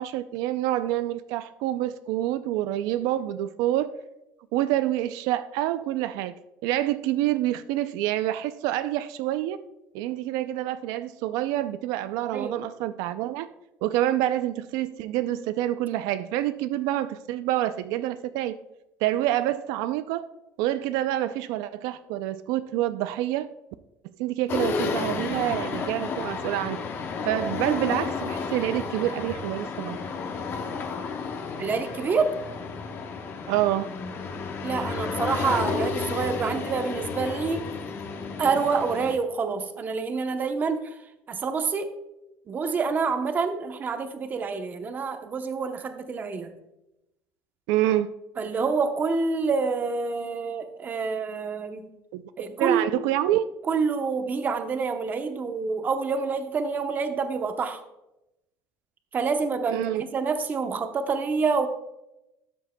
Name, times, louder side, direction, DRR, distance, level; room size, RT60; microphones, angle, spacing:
voice 1, 0.0-4.0 4.5-6.4 6.6-9.6 9.9-13.5 13.8-18.6 19.0-20.3 20.6-23.5 24.2-26.8 27.2-30.0 33.5-33.9 47.7-48.1 52.1-52.2 52.6-53.4 59.7-60.0, right 13 dB, 85° right, 12 dB, 0.4 m, -27 dB
sound 1, 24.5-39.2, left 5 dB, 40° left, 1.0 m, -32 dB
voice 2, 31.6-32.4 34.6-37.7 38.4-41.0 41.3-41.9 42.5-46.5 48.4-51.9 52.4-52.8 53.7-57.8 59.1-61.7, right 5 dB, 30° right, 7 dB, 0.8 m, -27 dB
13.0 x 7.4 x 2.2 m, 0.91 s
cardioid pair, 145°, 6 cm